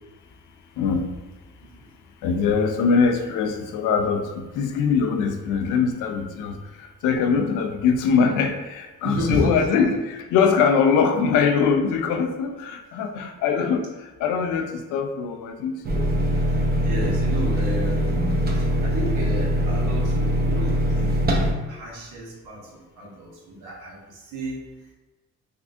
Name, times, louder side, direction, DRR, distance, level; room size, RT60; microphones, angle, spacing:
voice 1, 0.8-1.1 2.2-16.1, left 5 dB, 90° left, 5 dB, 0.5 m, -22 dB
voice 2, 9.0-9.6 16.8-18.2 18.5-21.1 21.7-22.6 23.0-24.6, right 1 dB, 85° right, -4 dB, 1.1 m, -31 dB
sound 1, 15.8-21.5, equal, 30° right, 0.6 m, -22 dB
3.6 x 2.4 x 2.5 m, 1.1 s
cardioid pair, 90°, 30 cm